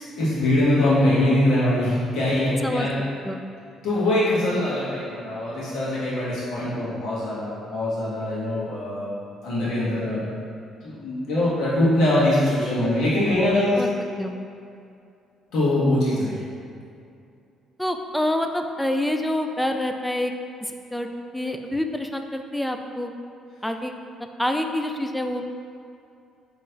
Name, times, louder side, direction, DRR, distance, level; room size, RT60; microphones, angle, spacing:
voice 1, 0.2-2.9 3.8-9.1 9.4-10.2 10.8-13.8 15.5-16.4, left 1 dB, 75° left, -9 dB, 1.4 m, -22 dB
voice 2, 17.8-20.3 20.6-21.1 21.3-23.1 23.6-23.9 24.4-25.5, left 1 dB, 5° left, 5 dB, 0.3 m, -26 dB
4.4 x 3.1 x 3.8 m, 2.5 s
cardioid pair, 105°, 0 cm